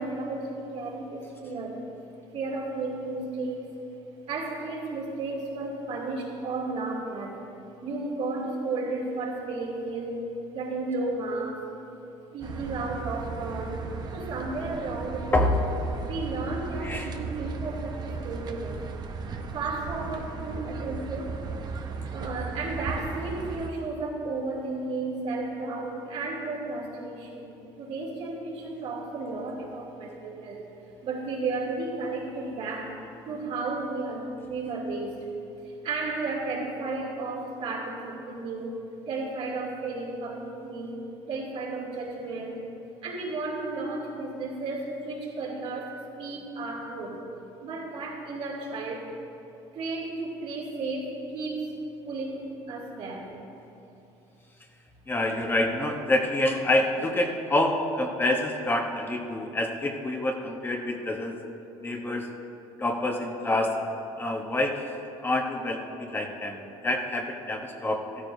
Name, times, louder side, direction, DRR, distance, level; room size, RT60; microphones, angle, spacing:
voice 1, 0.0-1.8 2.3-3.7 4.3-7.4 7.8-10.2 10.5-11.7 12.3-13.8 14.1-15.5 16.0-18.8 19.5-21.3 22.1-30.6 31.0-35.3 35.6-41.0 41.3-42.6 43.0-47.2 47.6-49.1 49.7-51.7 52.0-53.3, right 3 dB, 65° right, -3 dB, 2.7 m, -33 dB
sound 1, 12.4-23.7, right 4 dB, 40° right, 0.8 m, -36 dB
voice 2, 16.8-17.1 55.1-61.4 61.8-62.3 62.8-63.8 64.2-64.8 65.2-68.0, left 1 dB, 20° left, 2 dB, 1.0 m, -27 dB
15.0 x 13.5 x 2.7 m, 2.8 s
cardioid pair, 110°, 11 cm